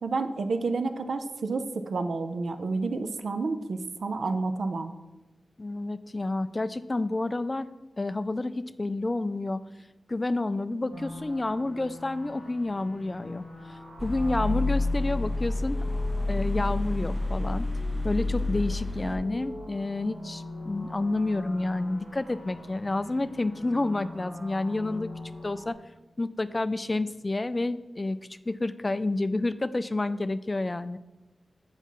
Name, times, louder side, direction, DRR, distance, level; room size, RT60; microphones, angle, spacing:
voice 1, 0.0-4.9, right 3 dB, 80° right, 9 dB, 0.4 m, -30 dB
voice 2, 5.6-7.7 8.0-9.6 10.1-15.8 16.3-17.7 18.0-25.1 25.4-25.7 26.2-28.2 28.5-31.0, left 2 dB, 30° left, 14 dB, 0.3 m, -29 dB
sound 1, 10.9-25.7, left 2 dB, 65° right, 2.1 m, -43 dB
sound 2, 14.0-19.2, left 2 dB, 5° right, 0.7 m, -29 dB
8.0 x 5.6 x 3.0 m, 1.1 s
wide cardioid pair, 85°, 0 cm